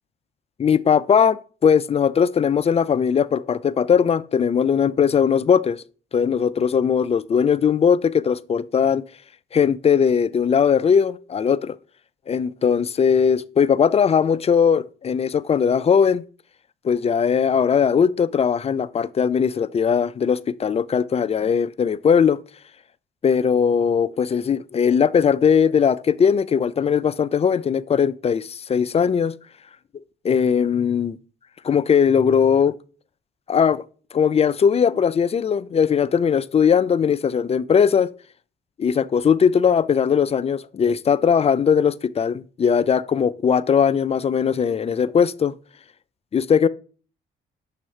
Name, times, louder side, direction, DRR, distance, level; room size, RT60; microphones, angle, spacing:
voice 1, 0.6-5.8 6.1-9.0 9.5-11.8 12.3-16.2 16.8-22.4 23.2-29.3 30.2-31.2 31.6-32.7 33.5-33.8 34.1-38.1 38.8-45.5 46.3-46.7, left 7 dB, 30° left, 0.3 m, -19 dB
7.1 x 2.9 x 4.8 m
cardioid pair, 90°, 20 cm